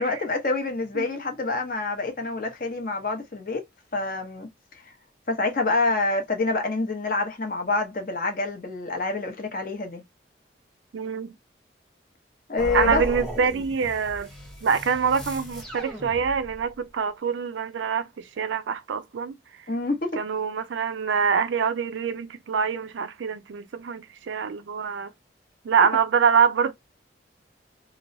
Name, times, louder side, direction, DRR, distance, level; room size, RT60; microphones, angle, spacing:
voice 1, 0.0-3.6 3.9-4.5 4.8-4.9 5.3-10.0 12.5-13.0 19.7-20.2, left 3 dB, 50° left, 0.8 m, -27 dB
voice 2, 10.9-11.3 12.7-14.3 14.6-19.3 20.2-25.1 25.6-26.7, right 6 dB, 85° right, 0.4 m, -25 dB
sound 1, 12.6-16.7, equal, 5° left, 0.9 m, -36 dB
3.0 x 2.0 x 2.6 m
head